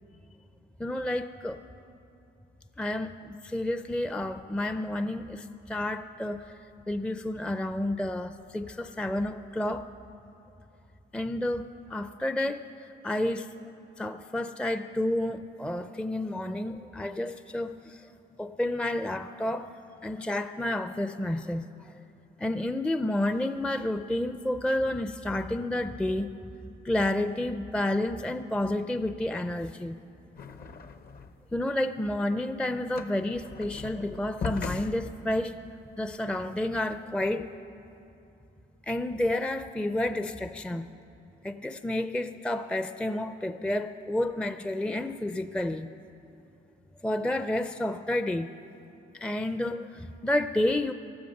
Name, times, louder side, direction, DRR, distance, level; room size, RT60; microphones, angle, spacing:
voice 1, 0.8-1.6 2.8-6.6 6.9-9.9 11.1-11.6 11.9-13.5 14.0-18.1 18.4-19.7 20.0-22.0 22.4-26.3 26.8-30.0 31.5-35.5 36.0-37.5 38.8-40.9 41.4-45.9 47.0-48.5 49.1-50.9, left 1 dB, 5° left, 9 dB, 0.4 m, -30 dB
sound 1, 30.4-31.5 31.8-36.4, left 5 dB, 50° left, 0.8 m, -39 dB
16.5 x 13.0 x 6.5 m, 2.8 s
cardioid pair, 90°, 20 cm